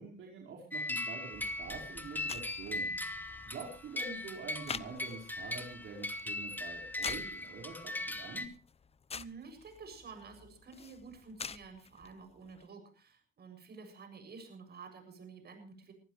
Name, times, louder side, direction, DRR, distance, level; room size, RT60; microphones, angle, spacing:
voice 1, 0.0-2.9 3.5-8.5, right 5 dB, 80° right, -2 dB, 5.2 m, -46 dB
sound 1, 0.7-8.5, left 2 dB, 10° left, 2.6 m, -39 dB
sound 2, 1.3-12.7, left 5 dB, 30° left, 0.8 m, -49 dB
voice 2, 9.1-15.9, right 4 dB, 55° right, 6 dB, 7.5 m, -51 dB
24.0 x 15.0 x 3.3 m, 0.35 s
cardioid pair, 90°, 20 cm